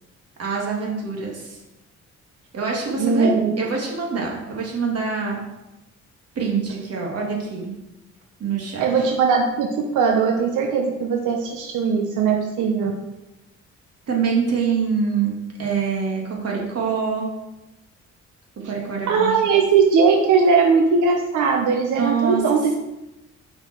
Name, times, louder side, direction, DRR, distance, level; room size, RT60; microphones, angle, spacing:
voice 1, 0.4-1.6 2.5-5.4 6.3-7.7 8.4-9.1 14.1-15.3 15.6-17.3 18.6-19.6 22.0-22.4, right 5 dB, 55° right, -1 dB, 2.6 m, -25 dB
voice 2, 3.0-3.5 8.8-12.9 19.1-22.6, right 5 dB, 80° right, 2 dB, 1.0 m, -19 dB
7.0 x 5.7 x 4.6 m, 0.98 s
cardioid pair, 90°, 30 cm